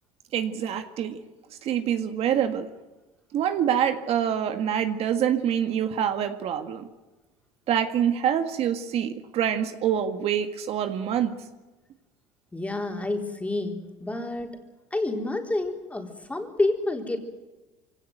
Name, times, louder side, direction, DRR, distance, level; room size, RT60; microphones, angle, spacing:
voice 1, 0.3-1.2 1.6-2.7 3.3-6.9 7.7-11.3, right 9 dB, 55° right, 8 dB, 1.8 m, -26 dB
voice 2, 12.5-14.6 14.9-17.2, left 2 dB, 10° left, 3 dB, 4.1 m, -29 dB
23.5 x 17.5 x 9.2 m, 1.2 s
supercardioid pair, 110°, 13 cm